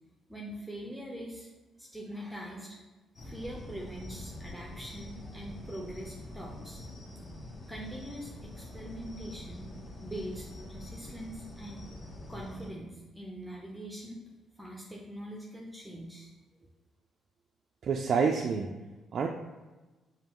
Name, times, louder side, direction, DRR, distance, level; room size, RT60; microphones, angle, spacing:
voice 1, 0.3-1.5 1.8-2.8 3.2-6.8 7.5-9.7 10.0-11.8 12.3-14.2 14.6-16.3, equal, 5° right, -2 dB, 0.6 m, -43 dB
sound 1, 3.1-12.7, left 1 dB, 40° left, 0.9 m, -45 dB
voice 2, 17.8-18.8 19.1-19.3, right 5 dB, 55° right, 1 dB, 0.3 m, -28 dB
5.3 x 2.3 x 3.0 m, 1.2 s
cardioid pair, 90°, 0 cm